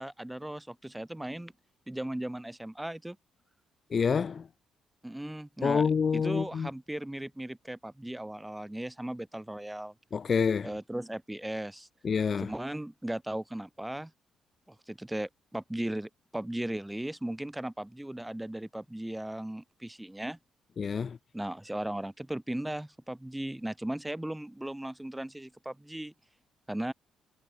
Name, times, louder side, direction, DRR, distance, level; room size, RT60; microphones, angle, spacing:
voice 1, 0.0-1.5 1.9-3.2 5.0-9.9 10.6-11.9 12.4-14.1 14.7-20.4 21.3-26.1 26.7-26.9, right 1 dB, 5° right, 3.3 m, -37 dB
voice 2, 3.9-4.4 5.6-6.7 10.1-10.7 12.0-12.5 20.8-21.2, left 6 dB, 45° left, 0.5 m, -27 dB
cardioid pair, 90°, 0 cm